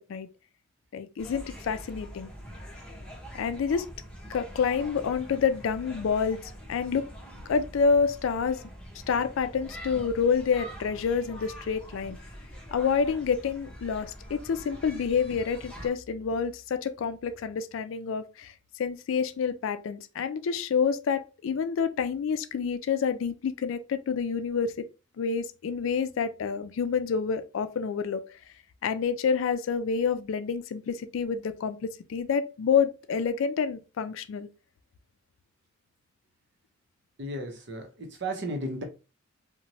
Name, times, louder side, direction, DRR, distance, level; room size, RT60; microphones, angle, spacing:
voice 1, 0.9-2.3 3.3-3.9 4.3-6.4 6.7-7.1 7.5-8.6 9.1-12.2 12.7-18.5 18.8-24.9 25.2-28.2 28.8-34.5, left 6 dB, 70° left, 0.3 m, -28 dB
sound 1, 1.2-15.9, equal, 5° left, 0.8 m, -44 dB
voice 2, 37.2-38.8, right 1 dB, 60° right, 0.7 m, -34 dB
2.9 x 2.1 x 2.6 m
head